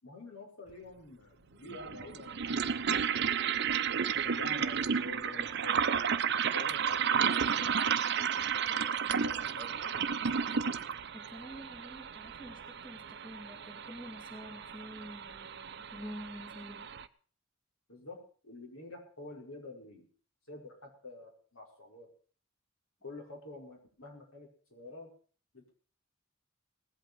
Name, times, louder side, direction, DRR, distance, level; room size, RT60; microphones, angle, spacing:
voice 1, 0.0-3.7 4.1-5.9 6.5-7.1 7.3-10.1 17.9-20.1 20.5-22.1 23.0-25.1 25.5-25.7, left 3 dB, 80° left, 0 dB, 5.2 m, -49 dB
sound 1, 0.7-0.8 1.7-17.1, right 7 dB, 55° right, 0.6 m, -32 dB
voice 2, 11.1-16.9, equal, 20° left, 1 dB, 2.8 m, -48 dB
19.0 x 8.3 x 6.1 m, 0.42 s
head